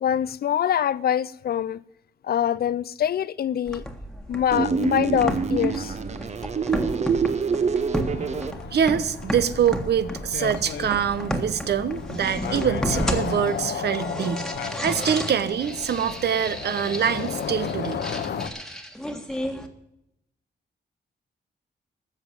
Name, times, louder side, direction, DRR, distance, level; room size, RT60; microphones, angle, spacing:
voice 1, 0.0-1.8 2.2-3.8 4.3-6.0, left 9 dB, 60° left, 0.5 m, -24 dB
sound 1, 3.7-19.7, equal, 5° left, 1.6 m, -33 dB
sound 2, 4.5-8.5, right 5 dB, 40° right, 1.0 m, -25 dB
sound 3, 8.0-18.5, left 7 dB, 80° left, 1.3 m, -34 dB
voice 2, 8.7-14.5 14.8-18.0, right 8 dB, 70° right, 1.0 m, -24 dB
14.0 x 7.3 x 8.9 m
wide cardioid pair, 135°, 18 cm